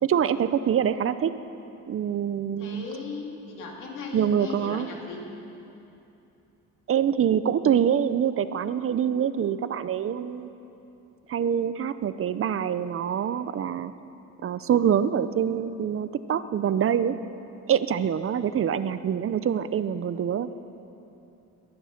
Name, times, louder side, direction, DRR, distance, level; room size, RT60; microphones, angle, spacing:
voice 1, 0.0-1.3 1.9-2.9 4.1-4.9 6.9-10.5 11.3-13.9 14.4-17.2 17.7-20.5, right 8 dB, 45° right, 13 dB, 0.6 m, -25 dB
voice 2, 2.6-5.2, left 4 dB, 90° left, 0 dB, 2.6 m, -37 dB
19.0 x 11.0 x 5.9 m, 2.9 s
cardioid pair, 90°, 30 cm